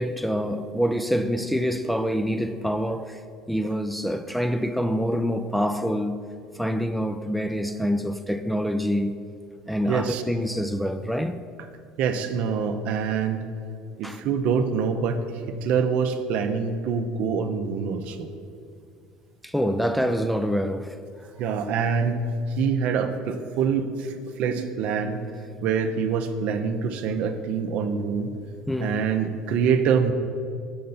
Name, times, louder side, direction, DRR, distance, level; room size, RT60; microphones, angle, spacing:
voice 1, 0.0-3.2 3.5-6.2 6.6-9.2 9.7-11.4 14.0-14.2 19.4-21.0 28.7-29.0, equal, ahead, 0.3 m, -26 dB
voice 2, 9.9-10.2 12.0-13.5 14.0-18.3 21.4-25.2 25.6-28.4 28.8-30.1, right 6 dB, 65° right, 0.5 m, -25 dB
6.7 x 5.4 x 4.0 m
supercardioid pair, 85°, 3 cm